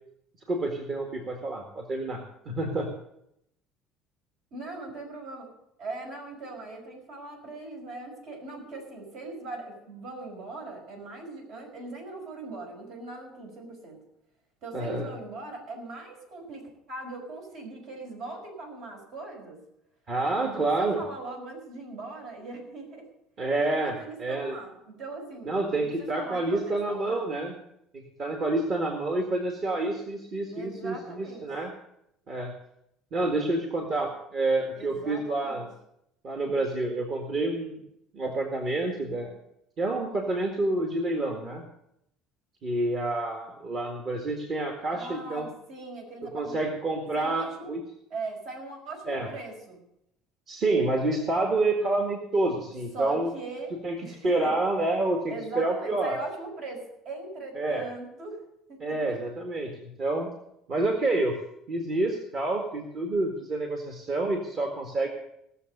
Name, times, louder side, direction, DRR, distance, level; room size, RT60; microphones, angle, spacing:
voice 1, 0.5-2.9 14.7-15.1 20.1-21.0 23.4-24.6 25.5-27.5 27.9-31.7 32.3-32.5 33.1-35.7 36.2-37.8 38.1-39.4 39.8-41.6 42.6-45.5 46.2-47.8 49.1-49.3 50.5-53.3 53.8-54.0 54.2-56.2 57.6-57.8 58.8-60.3 60.7-61.3 61.7-65.1, right 2 dB, 40° right, 2 dB, 1.9 m, -28 dB
voice 2, 4.5-5.5 5.8-14.0 14.6-16.6 16.9-19.6 20.4-23.1 23.8-25.6 26.0-27.3 30.5-31.5 34.7-35.6 44.9-46.6 47.1-47.7 48.1-49.8 52.9-54.6 55.3-58.4 58.7-59.2, right 2 dB, 65° right, 2 dB, 5.6 m, -40 dB
18.0 x 7.1 x 6.7 m, 0.79 s
cardioid pair, 130°, 0 cm